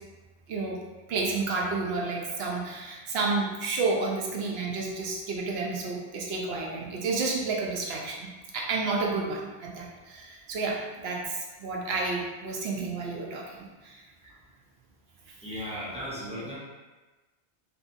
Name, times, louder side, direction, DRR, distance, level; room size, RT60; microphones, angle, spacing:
voice 1, 1.1-8.3 8.5-13.6 13.8-14.0, right 3 dB, 70° right, -2 dB, 0.8 m, -30 dB
voice 2, 15.4-16.6, equal, 10° right, -8 dB, 0.5 m, -36 dB
2.8 x 2.5 x 2.5 m, 1.2 s
omnidirectional pair, 1.1 m